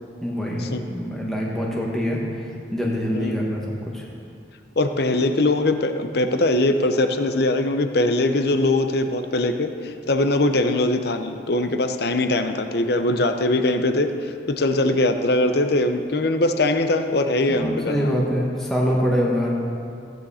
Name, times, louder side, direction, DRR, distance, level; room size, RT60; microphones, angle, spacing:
voice 1, 0.2-2.2 2.7-3.6 3.9-4.0 17.5-19.5, equal, 5° left, -4 dB, 1.4 m, -24 dB
voice 2, 4.8-18.1, left 2 dB, 65° left, 7 dB, 0.8 m, -21 dB
15.5 x 9.2 x 4.3 m, 2.4 s
head